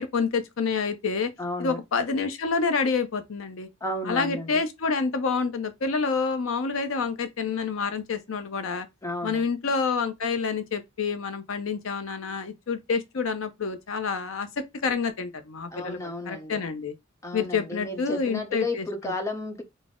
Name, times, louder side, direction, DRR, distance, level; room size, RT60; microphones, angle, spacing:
voice 1, 0.0-1.3 1.6-3.7 4.1-8.9 9.2-16.9 17.3-18.8, left 5 dB, 75° left, 0.5 m, -28 dB
voice 2, 1.4-1.8 3.8-4.6 9.0-9.4 15.7-16.6 17.2-19.6, left 1 dB, 15° left, 0.7 m, -33 dB
3.9 x 2.0 x 3.6 m
head